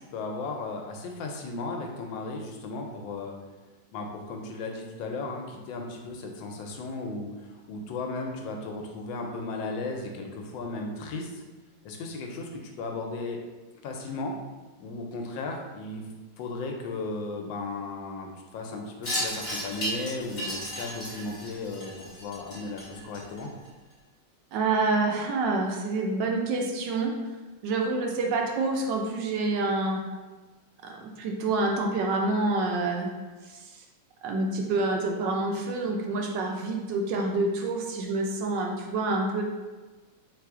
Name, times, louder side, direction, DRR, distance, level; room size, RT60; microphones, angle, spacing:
voice 1, 0.1-3.4 3.9-11.4 11.8-13.4 13.8-14.3 14.8-16.1 16.4-23.5, left 3 dB, 75° left, 2 dB, 1.3 m, -35 dB
Wind chime, 19.0-23.7, equal, 35° left, 1.6 m, -34 dB
voice 2, 24.5-27.1 27.6-30.0 30.8-30.9 31.2-33.1 34.2-39.4, right 3 dB, 75° right, 1 dB, 1.2 m, -27 dB
3.3 x 3.3 x 3.6 m, 1.3 s
omnidirectional pair, 2.1 m